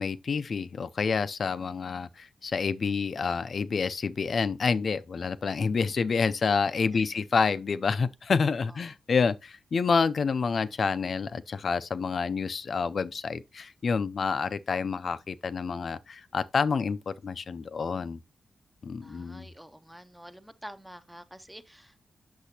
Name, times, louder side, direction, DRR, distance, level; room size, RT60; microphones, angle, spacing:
voice 1, 0.0-18.2 18.8-19.5, left 5 dB, 45° left, 0.4 m, -28 dB
voice 2, 19.0-22.1, equal, 5° right, 0.6 m, -48 dB
8.2 x 6.6 x 2.8 m
wide cardioid pair, 170°, 0 cm